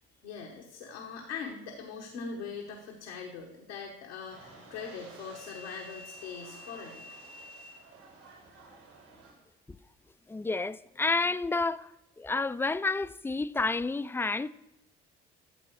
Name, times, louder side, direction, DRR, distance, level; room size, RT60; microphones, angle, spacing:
voice 1, 0.2-7.1, left 5 dB, 85° left, 1.2 m, -41 dB
sound 1, 4.3-9.3, right 1 dB, 75° right, 4.1 m, -50 dB
voice 2, 10.3-11.9 12.2-14.5, left 3 dB, 5° left, 0.3 m, -30 dB
12.5 x 7.6 x 4.6 m
hypercardioid pair, 55°, 32 cm